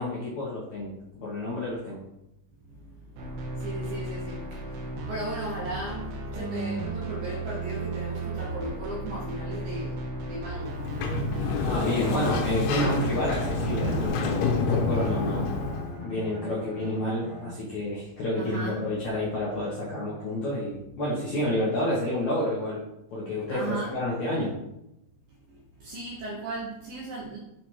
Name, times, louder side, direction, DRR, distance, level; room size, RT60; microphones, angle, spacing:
voice 1, 0.0-2.0 11.7-15.6 16.0-22.8 23.1-24.5, left 1 dB, 65° left, -6 dB, 1.9 m, -29 dB
voice 2, 2.7-10.8 11.1-11.6 12.7-13.2 14.0-14.1 18.4-18.8 23.5-24.0 25.5-27.4, right 2 dB, 70° right, -3 dB, 2.2 m, -37 dB
sound 1, 3.2-14.1, right 2 dB, 90° right, 3.5 m, -34 dB
Sliding door, 10.6-16.0, left 4 dB, 85° left, 3.2 m, -28 dB
Bowed string instrument, 13.7-18.0, left 2 dB, 45° left, 2.2 m, -42 dB
8.1 x 4.4 x 4.7 m, 0.87 s
omnidirectional pair, 5.3 m